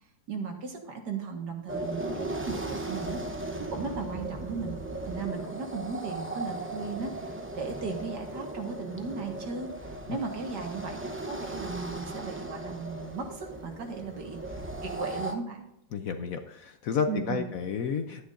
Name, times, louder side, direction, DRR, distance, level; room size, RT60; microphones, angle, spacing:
voice 1, 0.3-3.2 3.7-4.8 5.1-14.4 14.8-15.6 17.1-17.5, right 5 dB, 70° right, 3 dB, 2.1 m, -36 dB
sound 1, 1.7-15.3, right 2 dB, 20° right, 0.3 m, -37 dB
voice 2, 15.9-18.3, left 6 dB, 65° left, 7 dB, 0.9 m, -31 dB
11.5 x 9.6 x 2.6 m, 0.84 s
omnidirectional pair, 1.9 m